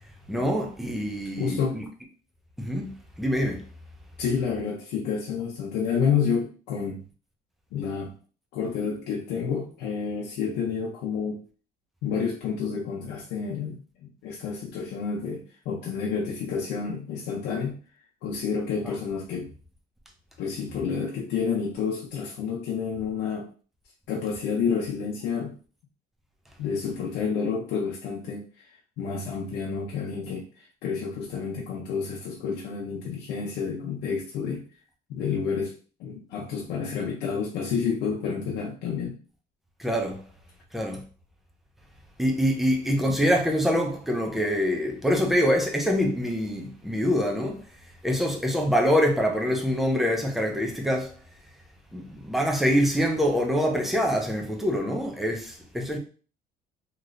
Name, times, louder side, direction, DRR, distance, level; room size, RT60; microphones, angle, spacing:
voice 1, 0.3-1.8 2.6-2.9 3.2-3.6 39.8-40.2 40.7-41.0 42.2-47.6 48.0-51.1 51.9-56.0, equal, ahead, 0.7 m, -25 dB
voice 2, 1.4-1.8 4.2-7.0 7.7-8.1 8.5-11.4 12.0-17.8 18.2-19.5 20.4-23.5 24.1-25.5 26.6-28.4 29.0-30.5 30.8-34.6 35.1-35.7 36.0-39.2, left 6 dB, 85° left, 0.7 m, -29 dB
3.0 x 2.9 x 2.6 m
cardioid pair, 110°, 17 cm